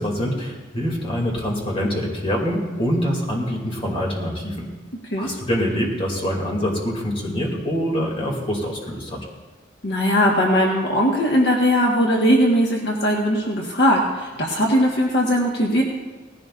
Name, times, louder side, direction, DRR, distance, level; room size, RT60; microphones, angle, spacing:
voice 1, 0.0-4.7 5.2-9.2, equal, 30° left, -2 dB, 2.7 m, -25 dB
voice 2, 9.8-15.8, equal, 60° left, -2 dB, 1.6 m, -19 dB
18.5 x 15.5 x 2.6 m, 1.4 s
head